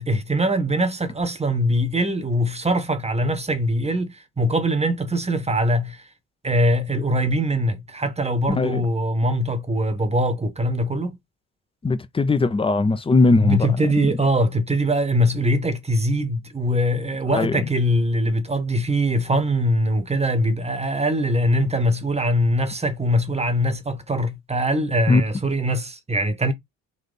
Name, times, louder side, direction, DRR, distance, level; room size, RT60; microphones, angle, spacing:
voice 1, 0.0-6.0 6.4-11.2 13.4-26.5, equal, 15° right, 1.0 m, -22 dB
voice 2, 8.5-8.8 11.8-13.9 17.3-17.7 25.1-25.2, left 3 dB, 10° left, 0.5 m, -19 dB
4.0 x 2.6 x 3.7 m
hypercardioid pair, 55°, 47 cm